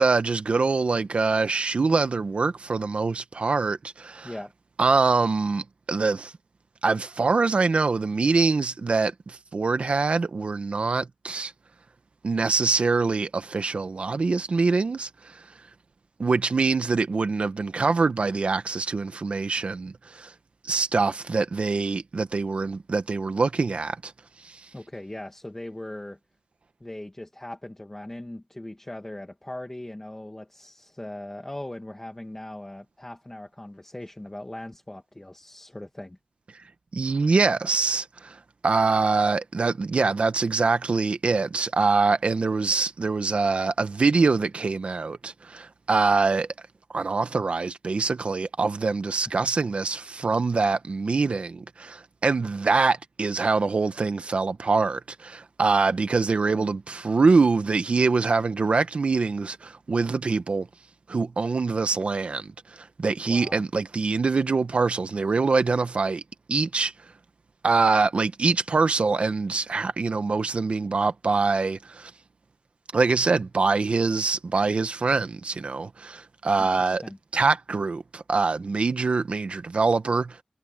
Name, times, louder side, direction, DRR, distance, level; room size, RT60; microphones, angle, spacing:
voice 1, 0.0-4.3 4.8-6.3 6.8-11.5 12.2-15.4 16.2-20.3 20.6-24.1 24.4-24.6 36.9-46.5 46.9-60.7 61.1-66.2 66.5-66.9 67.6-72.1 72.9-77.0 77.3-80.4, right 4 dB, 55° right, 1.2 m, -24 dB
voice 2, 24.7-26.2 26.8-36.2 56.5-56.7 63.3-63.6 76.6-77.2, left 1 dB, 15° left, 1.8 m, -39 dB
wide cardioid pair, 110°, 2 cm